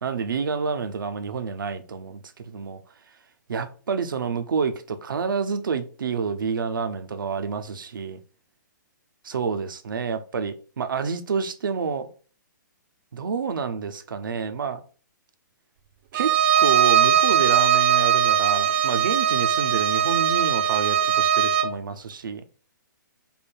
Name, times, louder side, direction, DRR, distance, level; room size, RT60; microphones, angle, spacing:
voice 1, 0.0-2.8 3.1-3.2 3.5-8.2 9.2-12.1 13.1-14.8 16.1-22.4, right 5 dB, 90° right, 0.5 m, -28 dB
Bowed string instrument, 16.1-21.8, right 9 dB, 35° right, 0.4 m, -20 dB
3.4 x 2.2 x 4.4 m
hypercardioid pair, 150°, 11 cm